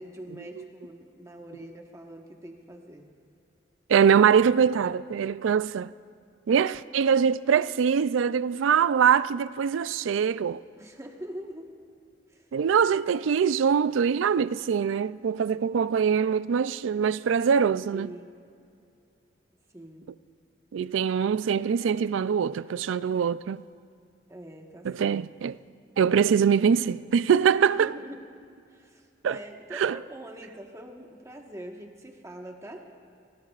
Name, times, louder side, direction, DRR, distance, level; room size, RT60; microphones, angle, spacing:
voice 1, 0.0-3.0 10.8-11.7 12.3-12.5 17.9-18.3 19.7-20.1 24.3-25.2 27.7-28.3 28.7-32.8, right 1 dB, 15° right, 1.3 m, -43 dB
voice 2, 3.9-5.9 6.5-10.6 12.5-18.1 20.7-23.6 24.8-25.6 26.0-27.9 29.2-29.4 29.8-30.0, right 7 dB, 85° right, 0.4 m, -23 dB
28.0 x 19.5 x 2.4 m
head